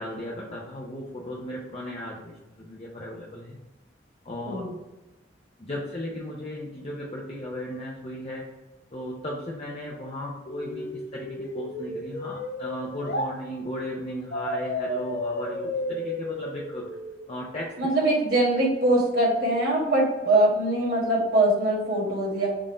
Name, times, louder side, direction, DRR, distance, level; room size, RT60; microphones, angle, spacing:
voice 1, 0.0-3.6 4.2-4.6 5.6-8.5 8.9-16.9 17.3-17.7, left 1 dB, 30° left, -3 dB, 0.5 m, -36 dB
sound 1, 10.5-13.3 14.3-17.3, left 1 dB, 45° left, 1.1 m, -33 dB
voice 2, 17.8-22.5, right 1 dB, 55° right, -5 dB, 1.4 m, -22 dB
3.7 x 2.5 x 4.4 m, 1.0 s
head